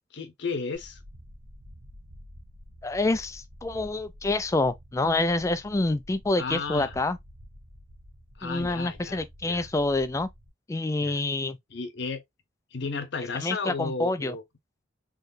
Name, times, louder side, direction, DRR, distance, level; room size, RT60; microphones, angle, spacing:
voice 1, 0.1-1.0 6.4-6.9 8.4-9.7 11.0-11.2 11.7-12.2 12.7-14.4, left 4 dB, 60° left, 0.8 m, -33 dB
sound 1, 0.7-10.5, equal, 65° right, 1.3 m, -49 dB
voice 2, 2.8-7.2 8.4-10.3 10.7-11.6 13.4-14.4, left 2 dB, 15° left, 0.3 m, -27 dB
3.9 x 3.1 x 2.5 m
head